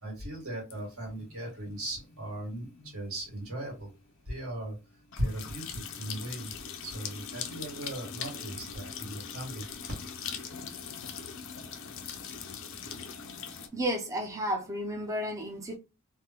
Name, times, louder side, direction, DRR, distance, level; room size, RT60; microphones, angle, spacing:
voice 1, 0.0-3.9 4.3-4.8 5.2-6.5 6.8-9.6, right 1 dB, 75° right, 1.8 m, -38 dB
sound 1, 0.7-13.7, left 7 dB, 55° left, 0.5 m, -42 dB
voice 2, 13.7-15.8, equal, 15° right, 0.4 m, -32 dB
3.4 x 2.1 x 2.8 m
head